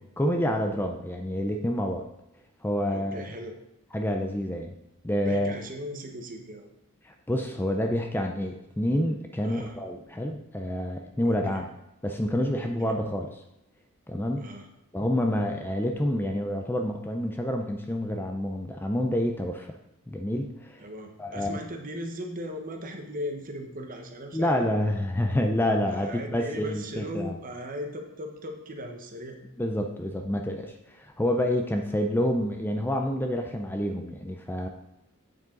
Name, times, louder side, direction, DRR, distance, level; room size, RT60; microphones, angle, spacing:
voice 1, 0.2-2.1 2.6-3.2 3.9-4.8 5.0-5.5 7.0-11.7 12.0-13.4 14.1-14.4 14.9-19.8 20.1-20.8 21.2-21.6 24.3-27.3 29.6-34.7, left 1 dB, 10° left, 3 dB, 0.5 m, -28 dB
voice 2, 2.9-3.6 5.2-6.7 9.4-9.8 11.2-11.6 12.6-13.0 14.4-14.7 20.8-24.7 25.9-29.4, equal, 40° right, 3 dB, 1.2 m, -38 dB
8.3 x 7.2 x 3.9 m, 0.86 s
head